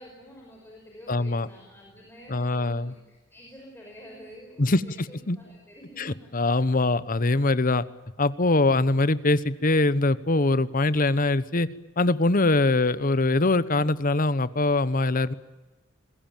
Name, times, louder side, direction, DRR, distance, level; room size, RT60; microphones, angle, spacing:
voice 1, 0.0-6.3, equal, 10° left, -1 dB, 5.6 m, -48 dB
voice 2, 1.1-1.5 2.3-2.9 4.6-4.8 5.3-5.4 6.0-7.8 8.2-11.7 12.0-15.3, left 2 dB, 45° left, 16 dB, 1.0 m, -23 dB
27.0 x 21.5 x 9.1 m, 1.1 s
head